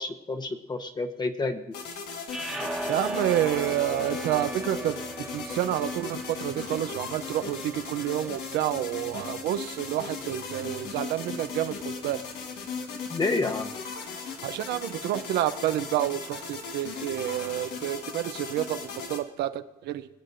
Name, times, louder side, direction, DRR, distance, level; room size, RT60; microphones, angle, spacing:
voice 1, 0.0-1.6 13.1-13.7, left 3 dB, 25° left, 7 dB, 1.1 m, -29 dB
sound 1, 1.7-19.2, left 5 dB, 80° left, 1.5 m, -38 dB
sound 2, 2.3-8.6, right 1 dB, ahead, 1.3 m, -37 dB
voice 2, 2.9-5.0 5.3-12.2 14.4-20.1, right 12 dB, 80° right, 10 dB, 0.7 m, -29 dB
24.5 x 8.2 x 2.7 m, 1.0 s
cardioid pair, 110°, 17 cm